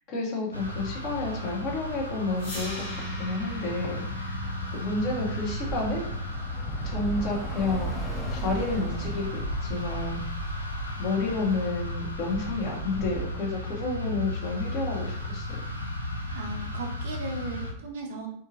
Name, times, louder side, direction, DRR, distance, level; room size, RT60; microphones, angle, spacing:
voice 1, 0.1-4.4 4.7-6.0 6.8-7.9 8.3-10.2 11.0-15.5, left 3 dB, 40° left, -2 dB, 0.8 m, -30 dB
sound 1, 0.5-17.7, left 1 dB, 85° left, 0.4 m, -35 dB
sound 2, 2.4-8.4, equal, 65° left, 1.1 m, -41 dB
Bus / Traffic noise roadway noise, 4.4-13.2, right 3 dB, 10° left, 0.5 m, -37 dB
voice 2, 16.3-18.3, right 2 dB, 55° right, 1 dB, 0.5 m, -36 dB
2.9 x 2.6 x 2.6 m, 0.67 s
figure-of-eight pair, 90°, 0 cm